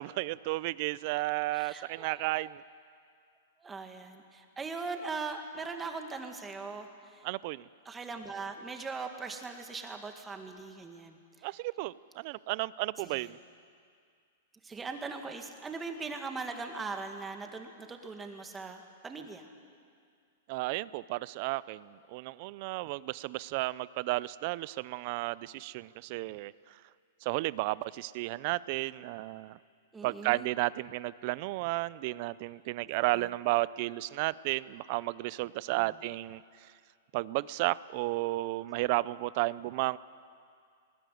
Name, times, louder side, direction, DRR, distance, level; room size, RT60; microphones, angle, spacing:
voice 1, 0.0-2.6 7.2-7.7 11.4-13.4 20.5-26.8 27.2-29.6 30.0-36.7 37.1-40.0, right 20 dB, 50° right, 20 dB, 0.5 m, -33 dB
voice 2, 1.5-2.5 3.6-7.3 7.9-11.5 13.1-13.3 14.6-19.5 29.9-30.5 33.1-33.3 35.8-35.9, right 4 dB, 15° right, 5 dB, 2.1 m, -40 dB
19.5 x 18.5 x 9.4 m, 2.2 s
hypercardioid pair, 135°, 0 cm